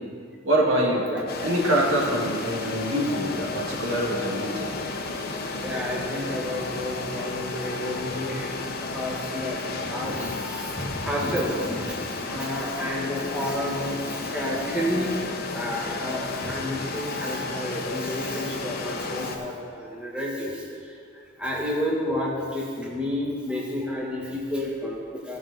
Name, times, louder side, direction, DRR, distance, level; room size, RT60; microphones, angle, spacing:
voice 1, 0.4-1.1 1.4-4.7, right 1 dB, 75° right, -2 dB, 1.8 m, -24 dB
sound 1, 1.3-19.4, left 3 dB, 50° left, 0.8 m, -32 dB
voice 2, 5.6-8.6 8.9-15.1 15.5-25.4, left 1 dB, 5° right, -4 dB, 1.3 m, -31 dB
15.5 x 6.0 x 3.9 m, 2.2 s
head